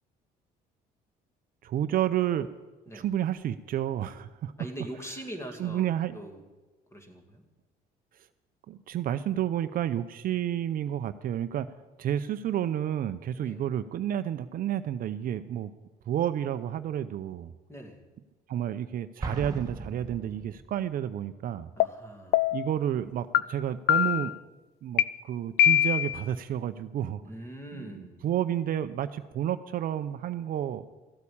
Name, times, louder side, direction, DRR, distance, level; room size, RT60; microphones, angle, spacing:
voice 1, 1.6-2.5 2.9-4.5 5.6-6.2 8.7-11.7 12.0-15.7 16.1-17.5 18.5-21.7 22.5-24.3 24.8-27.2 27.7-30.8, right 10 dB, 55° right, 11 dB, 0.6 m, -30 dB
voice 2, 4.6-5.9 6.1-6.4 6.9-7.4 13.4-13.6 17.7-18.0 21.8-22.5 27.2-28.3, right 1 dB, 15° left, 4 dB, 2.3 m, -42 dB
Explosion, 19.2-21.0, right 3 dB, 20° right, 1.3 m, -38 dB
sound 1, 21.8-21.9 22.3-22.7 23.3-23.4 23.9-24.3 25.0-25.1 25.6-26.2, left 12 dB, 75° left, 0.5 m, -22 dB
14.0 x 8.4 x 8.7 m, 1.2 s
cardioid pair, 110°, 17 cm